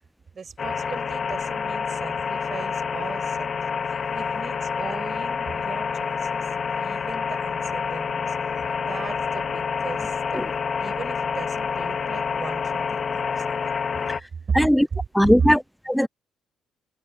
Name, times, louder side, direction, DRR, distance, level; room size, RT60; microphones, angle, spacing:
voice 1, 0.3-3.5 4.1-6.5 6.8-8.4 8.8-10.5 10.8-13.6 14.5-14.6, right 5 dB, 40° right, 6.5 m, -37 dB
sound 1, 0.6-14.2, left 6 dB, 45° left, 2.9 m, -28 dB
voice 2, 14.5-14.9 15.1-16.1, equal, ahead, 0.5 m, -19 dB
cardioid pair, 90°, 0 cm